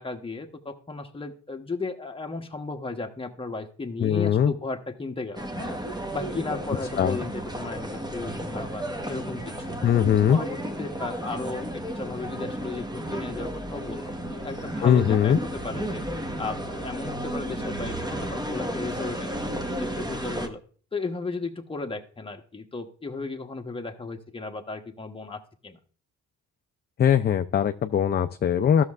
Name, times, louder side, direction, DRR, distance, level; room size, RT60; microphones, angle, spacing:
voice 1, 0.0-5.7 6.1-9.9 10.3-16.0 16.4-20.6 20.9-25.8, left 3 dB, 20° left, 4 dB, 1.0 m, -35 dB
voice 2, 4.0-4.5 7.0-7.2 9.8-10.4 14.8-15.4 27.0-28.8, left 9 dB, 35° left, 8 dB, 0.4 m, -21 dB
sound 1, 5.3-20.5, right 1 dB, 15° right, 1.0 m, -33 dB
13.0 x 6.5 x 2.4 m, 0.43 s
cardioid pair, 90°, 30 cm